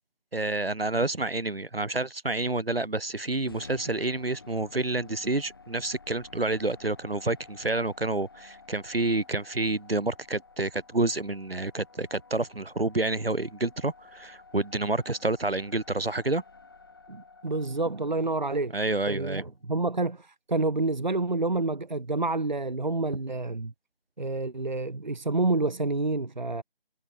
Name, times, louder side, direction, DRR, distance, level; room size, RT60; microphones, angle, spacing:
voice 1, 0.3-16.4 18.7-19.4, right 2 dB, 75° right, 3.2 m, -29 dB
sound 1, 3.5-19.6, left 4 dB, 25° left, 3.8 m, -52 dB
voice 2, 17.1-18.7 19.1-23.7 24.2-26.6, right 3 dB, 50° right, 1.5 m, -28 dB
figure-of-eight pair, 175°, 29 cm